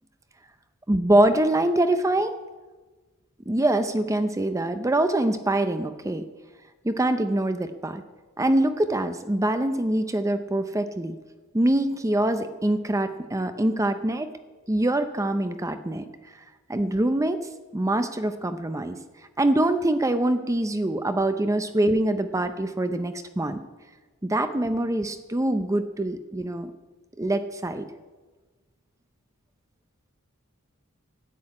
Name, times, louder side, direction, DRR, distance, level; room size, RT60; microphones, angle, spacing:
voice 1, 0.9-2.3 3.5-6.2 6.8-8.0 8.4-11.2 11.5-14.3 14.7-16.0 16.7-19.0 19.4-23.6 24.2-26.7 27.2-27.9, right 1 dB, 15° right, 9 dB, 0.6 m, -24 dB
13.0 x 7.9 x 9.7 m, 1.3 s
head